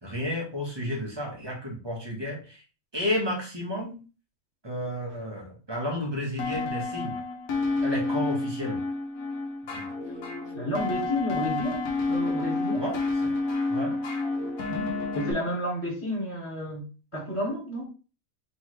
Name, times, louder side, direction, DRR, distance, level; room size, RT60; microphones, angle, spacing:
voice 1, 0.0-2.6 2.9-4.0 4.6-7.2 7.8-8.8 9.7-9.8 12.7-13.4 13.7-14.0, left 1 dB, 20° right, -1 dB, 1.4 m, -32 dB
sound 1, 6.4-15.3, left 3 dB, 75° left, 1.4 m, -29 dB
voice 2, 10.5-12.8 14.7-17.9, equal, 20° left, -6 dB, 2.2 m, -31 dB
3.9 x 3.5 x 3.2 m, 0.34 s
omnidirectional pair, 1.5 m